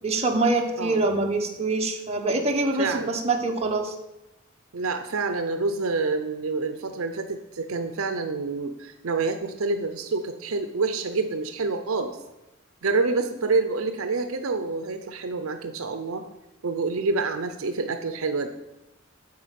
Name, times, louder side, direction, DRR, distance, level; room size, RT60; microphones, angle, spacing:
voice 1, 0.0-3.9, right 2 dB, 30° right, 2 dB, 1.2 m, -25 dB
voice 2, 2.8-3.1 4.7-12.2 12.8-16.2 16.6-18.5, right 3 dB, 75° right, 8 dB, 0.7 m, -27 dB
9.5 x 4.5 x 7.6 m, 0.94 s
head